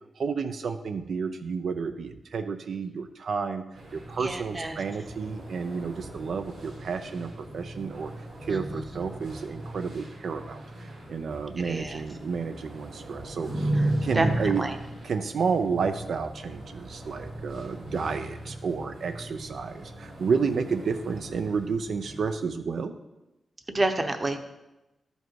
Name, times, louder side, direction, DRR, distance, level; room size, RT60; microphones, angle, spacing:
voice 1, 0.2-3.6 3.9-13.7 14.0-14.6 15.0-22.9, right 5 dB, 65° right, 8 dB, 0.5 m, -31 dB
sound 1, 3.7-22.3, right 1 dB, 85° right, 2.9 m, -36 dB
voice 2, 4.2-4.8 8.5-8.8 11.6-12.0 13.7-13.9 14.1-14.8 23.7-24.4, right 2 dB, 25° right, 7 dB, 0.9 m, -29 dB
12.5 x 5.3 x 4.6 m, 0.97 s
wide cardioid pair, 120°, 0 cm